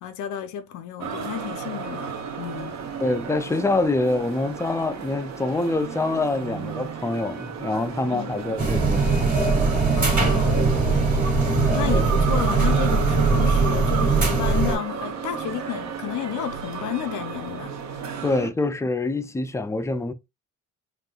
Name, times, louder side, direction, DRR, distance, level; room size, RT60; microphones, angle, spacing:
voice 1, 0.0-2.9 8.1-8.3 10.0-10.7 11.7-17.7, left 10 dB, 75° left, 0.5 m, -32 dB
sound 1, 1.0-18.5, right 6 dB, 65° right, 0.9 m, -33 dB
voice 2, 3.0-9.1 11.9-12.1 18.2-20.1, left 2 dB, 10° left, 0.3 m, -25 dB
sound 2, 8.6-14.8, right 4 dB, 30° right, 1.4 m, -20 dB
3.5 x 2.6 x 2.3 m
cardioid pair, 90°, 30 cm